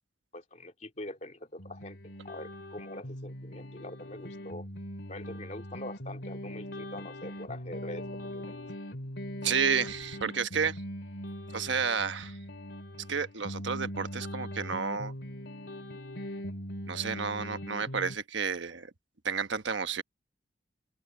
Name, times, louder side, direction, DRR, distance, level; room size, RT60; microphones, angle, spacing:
voice 1, 0.3-2.0 2.2-4.7 5.1-8.1 8.3-8.6, left 1 dB, 40° left, 2.6 m, -43 dB
sound 1, 1.6-18.2, equal, 70° left, 3.1 m, -41 dB
voice 2, 9.4-10.8 11.5-12.4 13.1-15.1 16.9-18.9 19.2-20.0, right 6 dB, 85° right, 1.2 m, -31 dB
open air
head